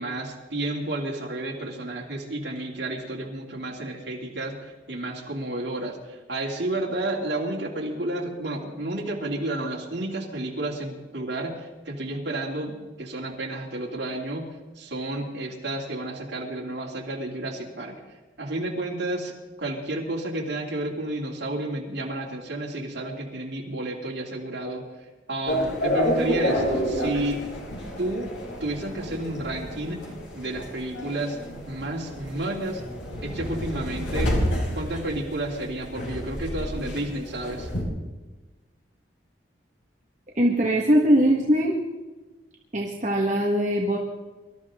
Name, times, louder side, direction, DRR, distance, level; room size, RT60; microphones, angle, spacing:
voice 1, 0.0-14.5 14.8-17.9 18.4-24.8 25.3-27.4 28.0-28.3 28.6-30.0 30.3-31.4 31.7-32.8 33.2-34.3 34.7-37.7, right 1 dB, 65° right, -2 dB, 2.9 m, -31 dB
sound 1, 25.5-37.8, equal, 85° left, 5.1 m, -29 dB
voice 2, 40.4-41.7 42.7-44.0, equal, 40° right, -2 dB, 1.7 m, -21 dB
25.0 x 13.0 x 3.8 m, 1.2 s
head